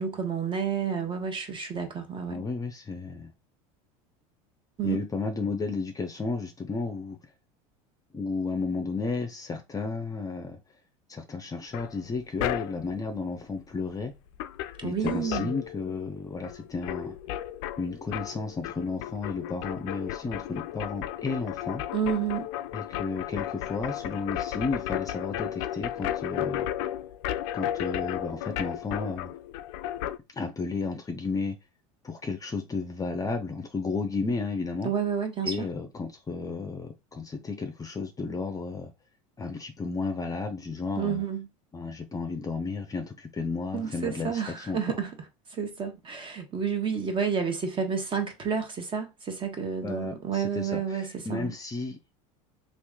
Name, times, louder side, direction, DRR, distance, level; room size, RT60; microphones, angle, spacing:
voice 1, 0.0-2.4 4.8-5.0 14.8-15.5 21.9-22.5 34.8-35.7 41.0-41.5 43.7-45.1 45.5-51.5, right 6 dB, 30° right, 1.1 m, -30 dB
voice 2, 2.3-3.3 4.8-7.2 8.1-10.6 11.1-14.1 14.8-17.1 17.8-21.8 22.7-26.7 27.5-29.3 30.3-31.6 32.0-34.9 35.4-38.9 39.4-41.2 41.7-44.8 49.8-52.1, left 4 dB, 20° left, 0.6 m, -33 dB
sound 1, 11.7-13.0 14.0-14.1 14.3-16.2 16.4-30.2, left 12 dB, 70° left, 0.4 m, -34 dB
3.0 x 2.5 x 3.6 m
supercardioid pair, 100°, 17 cm